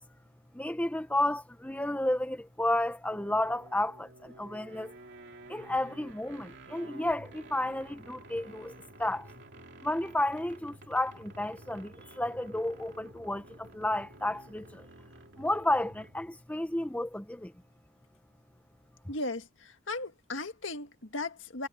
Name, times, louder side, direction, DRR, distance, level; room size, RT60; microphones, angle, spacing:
voice 1, 0.5-5.0 5.5-8.7 9.0-9.3 9.8-14.9 15.4-17.5, left 1 dB, 5° left, 0.8 m, -32 dB
sound 1, 3.0-16.4, right 1 dB, 60° right, 3.2 m, -51 dB
voice 2, 19.1-21.7, left 2 dB, 65° left, 2.0 m, -37 dB
head